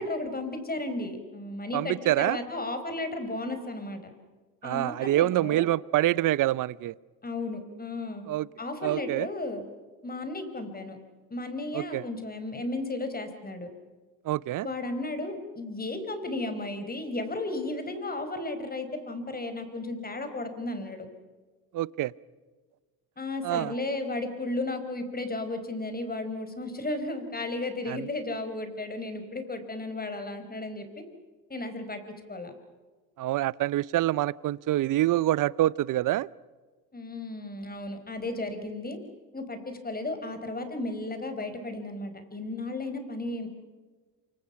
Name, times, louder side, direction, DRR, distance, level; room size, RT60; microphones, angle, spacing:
voice 1, 0.0-4.0 4.6-5.6 7.2-8.3 8.6-9.6 10.0-11.0 11.3-13.7 14.6-21.1 23.2-31.0 31.5-32.0 32.3-32.5 36.9-39.0 39.3-43.5, left 2 dB, 20° left, 8 dB, 4.8 m, -34 dB
voice 2, 1.7-2.4 4.6-6.9 8.3-8.5 8.8-9.3 11.7-12.0 14.2-14.7 21.7-22.1 23.4-23.7 27.9-28.1 33.2-36.3, right 15 dB, 40° right, 22 dB, 0.7 m, -26 dB
28.5 x 25.0 x 5.9 m, 1.4 s
hypercardioid pair, 80°, 47 cm